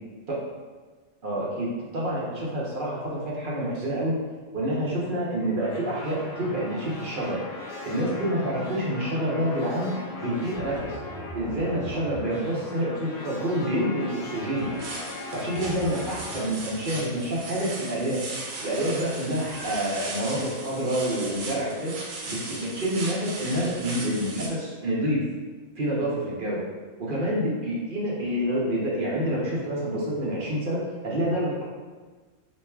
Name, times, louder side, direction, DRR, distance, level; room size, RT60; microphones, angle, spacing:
voice 1, 1.2-4.2 4.5-7.4 7.8-9.9 10.2-11.0 11.3-14.7 15.3-18.2 18.6-21.9 22.3-25.2 25.7-26.6 27.0-31.6, equal, 45° right, -5 dB, 0.8 m, -28 dB
sound 1, 5.6-16.5, left 1 dB, 60° left, 0.7 m, -38 dB
sound 2, 14.6-24.5, right 2 dB, 70° right, 1.0 m, -37 dB
4.5 x 3.1 x 2.2 m, 1.4 s
omnidirectional pair, 1.5 m